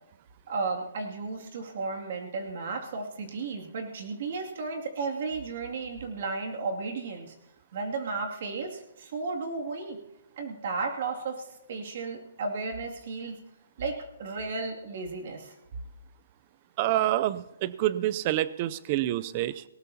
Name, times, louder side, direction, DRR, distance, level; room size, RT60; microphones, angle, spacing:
voice 1, 0.5-7.3 7.7-10.0 10.4-13.4 13.8-15.6, right 4 dB, 50° right, 2 dB, 2.4 m, -34 dB
voice 2, 16.8-19.6, right 14 dB, 30° right, 17 dB, 0.5 m, -27 dB
19.0 x 18.5 x 2.8 m, 0.90 s
hypercardioid pair, 165°, 0 cm